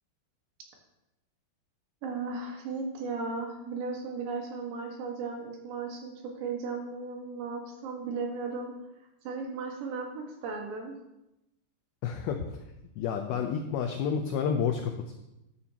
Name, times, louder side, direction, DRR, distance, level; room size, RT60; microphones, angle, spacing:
voice 1, 2.0-8.7 9.2-11.0, right 4 dB, 70° right, 1 dB, 3.6 m, -36 dB
voice 2, 12.0-12.6 13.0-15.1, left 7 dB, 90° left, 4 dB, 2.2 m, -30 dB
13.0 x 11.0 x 2.9 m, 0.90 s
omnidirectional pair, 5.4 m